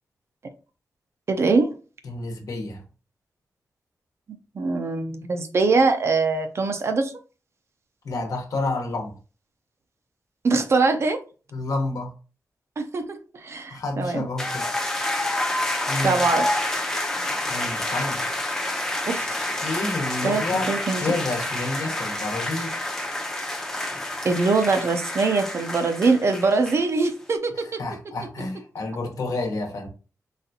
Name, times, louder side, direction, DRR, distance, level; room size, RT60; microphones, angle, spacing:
voice 1, 1.3-1.7 4.5-7.1 10.4-11.2 12.8-14.3 16.0-16.7 19.0-19.5 20.2-21.2 24.2-27.8, right 3 dB, 45° right, 0.5 m, -23 dB
voice 2, 2.0-2.8 8.0-9.1 11.5-12.1 13.7-14.7 15.9-16.2 17.5-18.2 19.6-20.7 21.0-22.8 27.5-29.9, left 2 dB, 70° left, 1.0 m, -29 dB
sound 1, 14.4-27.1, left 1 dB, 10° left, 0.6 m, -28 dB
4.1 x 3.3 x 2.7 m
wide cardioid pair, 180°, 6 cm